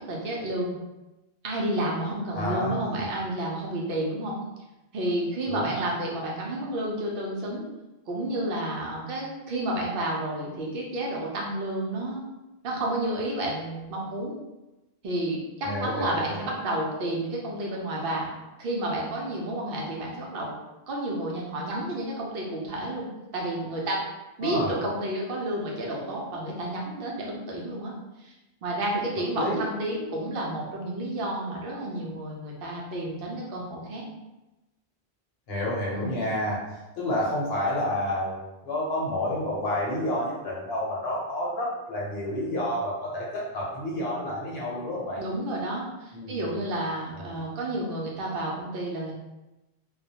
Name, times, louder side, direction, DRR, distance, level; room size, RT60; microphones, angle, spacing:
voice 1, 0.1-0.8 1.4-4.4 4.9-7.7 8.1-12.3 12.6-14.3 15.0-18.3 18.6-20.5 20.9-23.1 23.3-24.0 24.4-27.9 28.2-28.3 28.6-34.0 35.9-36.1 45.2-49.1, right 1 dB, 65° right, -2 dB, 0.7 m, -30 dB
voice 2, 2.3-3.1 5.5-5.7 15.6-16.5 24.4-24.7 29.3-29.6 35.5-36.6 36.9-38.4 38.6-45.2 46.1-46.4 47.2-47.3, left 1 dB, 70° left, -4 dB, 1.0 m, -29 dB
2.3 x 2.1 x 2.7 m, 1.0 s
omnidirectional pair, 1.1 m